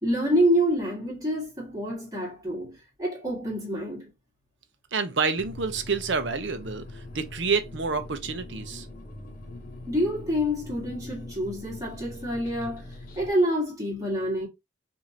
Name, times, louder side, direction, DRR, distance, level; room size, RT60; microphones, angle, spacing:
voice 1, 0.0-4.1 9.9-14.5, equal, 20° right, 1.7 m, -27 dB
voice 2, 4.9-8.9, right 4 dB, 65° right, 0.7 m, -28 dB
sound 1, 5.4-13.3, left 2 dB, 45° left, 0.9 m, -42 dB
5.0 x 2.6 x 2.7 m
head